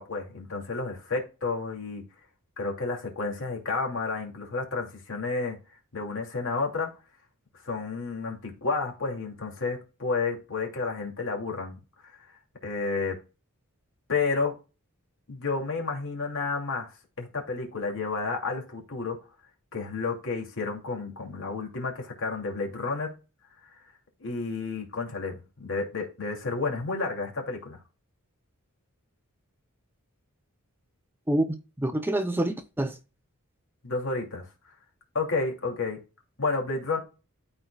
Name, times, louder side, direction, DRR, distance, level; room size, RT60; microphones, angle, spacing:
voice 1, 0.0-2.0 2.6-5.6 5.9-6.9 7.6-11.8 12.0-12.1 12.6-13.1 14.1-14.5 15.3-16.9 17.2-19.2 19.7-23.1 24.2-27.8 33.8-34.5 35.1-36.0 36.4-37.0, left 4 dB, 60° left, 2.7 m, -31 dB
voice 2, 31.3-32.9, right 1 dB, 10° right, 0.6 m, -27 dB
13.0 x 4.5 x 2.3 m
head